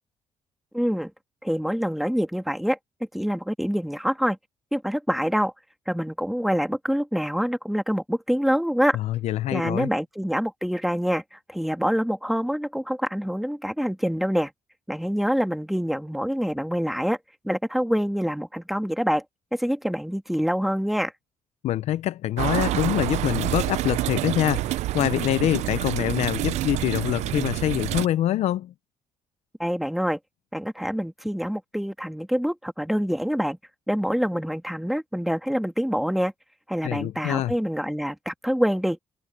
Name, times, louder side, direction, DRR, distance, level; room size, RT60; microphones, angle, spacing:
voice 1, 0.7-1.1 1.4-2.8 3.1-4.4 4.7-5.5 5.9-9.0 9.5-14.5 14.9-17.2 17.4-19.2 19.5-21.1 29.6-30.2 30.5-33.6 33.9-36.3 36.7-39.0, equal, ahead, 2.1 m, -26 dB
voice 2, 8.9-9.9 21.6-24.6 24.9-28.7 36.8-37.5, left 13 dB, 75° left, 0.5 m, -25 dB
sound 1, 22.4-28.1, right 16 dB, 85° right, 0.4 m, -27 dB
cardioid pair, 115°, 11 cm